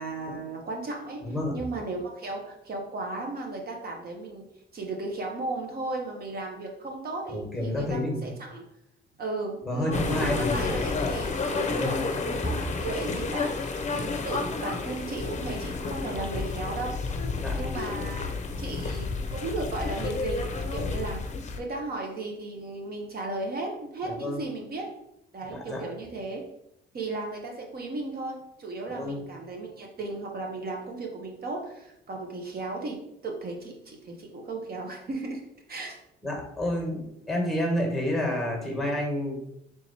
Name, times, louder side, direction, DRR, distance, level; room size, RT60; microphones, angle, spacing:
voice 1, 0.0-1.2 1.5-4.4 4.7-8.6 9.2-16.9 17.5-24.9 25.3-26.4 26.9-35.4 35.7-36.0, right 2 dB, 50° right, 1 dB, 0.9 m, -35 dB
voice 2, 1.2-1.5 7.3-8.3 9.6-10.6 11.7-12.0 17.4-17.6 24.0-24.4 25.5-25.8 28.8-29.2 36.2-39.4, left 1 dB, ahead, 0 dB, 1.5 m, -29 dB
sound 1, 9.9-21.6, left 4 dB, 35° left, 0.6 m, -31 dB
3.5 x 2.9 x 4.2 m, 0.78 s
cardioid pair, 90°, 20 cm